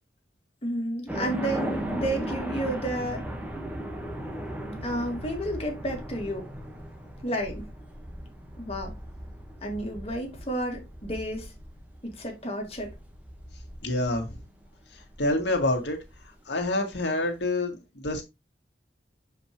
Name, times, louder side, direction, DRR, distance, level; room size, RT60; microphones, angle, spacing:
voice 1, 0.6-3.3 4.8-6.5 7.2-7.7 8.6-9.0 9.6-11.5 12.0-13.0, right 1 dB, 35° left, 2.1 m, -31 dB
sound 1, 1.1-16.2, right 1 dB, 10° right, 1.3 m, -37 dB
voice 2, 13.8-14.3 15.2-16.0 16.5-17.8 18.0-18.2, left 2 dB, 90° left, 2.0 m, -26 dB
7.2 x 5.1 x 3.0 m
head